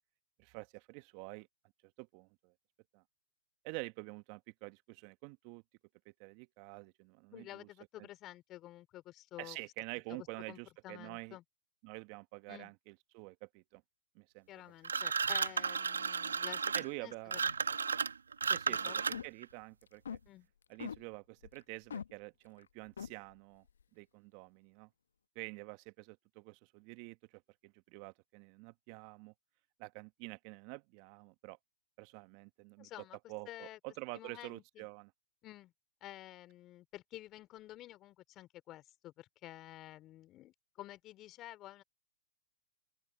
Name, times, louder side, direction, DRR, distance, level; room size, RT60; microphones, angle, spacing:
voice 1, 0.4-1.5 2.0-2.5 2.9-3.0 3.6-5.6 6.0-7.7 8.0-8.1 9.4-11.4 11.8-13.8 14.1-14.5 16.7-17.4 18.4-18.9 19.2-20.2 20.7-23.6 23.9-24.9 25.3-29.3 29.8-31.6 32.0-32.9 33.3-35.1, right 28 dB, 45° right, 1.3 m, -48 dB
voice 2, 7.3-9.6 10.1-10.6 10.8-11.4 12.5-12.7 14.5-16.7 17.0-17.5 18.7-19.0 20.3-20.5 32.8-33.2 33.5-33.8 34.1-34.9 35.4-35.7 36.0-41.8, left 15 dB, 30° left, 3.5 m, -51 dB
sound 1, 14.8-19.4, right 5 dB, 85° right, 1.1 m, -34 dB
sound 2, 19.0-19.5 19.8-20.2 20.8-21.0 21.4-21.6 21.9-22.1 22.6-22.7 23.0-23.1, left 7 dB, 80° left, 0.8 m, -42 dB
open air
hypercardioid pair, 120°, 0 cm